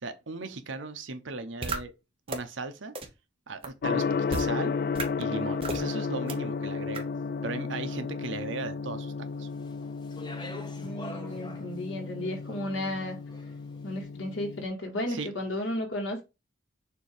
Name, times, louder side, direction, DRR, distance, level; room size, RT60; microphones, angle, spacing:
voice 1, 0.0-1.9 2.3-2.9 3.5-4.7 5.2-7.0 7.4-9.5 15.1-15.3, right 3 dB, 80° right, 0.9 m, -37 dB
sound 1, 1.6-1.8 2.3-2.4 2.9-3.0 3.6-3.7 4.3-4.5 4.9-5.0 5.6-5.8 6.3-6.4 6.9-7.0, right 3 dB, 30° right, 1.0 m, -32 dB
Gong, 3.8-14.6, left 5 dB, 50° left, 0.3 m, -33 dB
Speech, 9.5-13.8, left 1 dB, 20° left, 0.9 m, -46 dB
voice 2, 10.8-13.2 13.8-16.2, left 1 dB, 90° left, 2.0 m, -33 dB
6.8 x 2.8 x 4.9 m
head